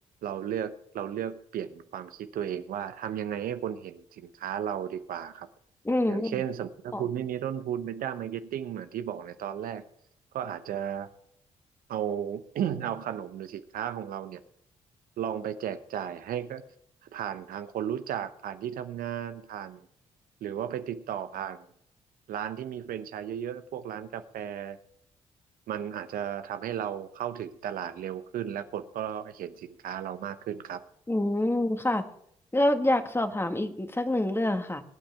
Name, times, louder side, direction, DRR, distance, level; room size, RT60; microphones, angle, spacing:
voice 1, 0.2-5.5 6.1-9.8 10.3-11.1 11.9-14.4 15.2-16.6 17.0-19.8 20.4-21.7 22.3-24.8 25.7-30.8, right 9 dB, 70° right, 11 dB, 0.8 m, -34 dB
voice 2, 5.8-6.4 6.9-7.0 31.1-32.0 32.5-34.8, left 1 dB, 15° left, 7 dB, 1.6 m, -26 dB
21.5 x 8.8 x 3.5 m, 0.69 s
hypercardioid pair, 45°, 16 cm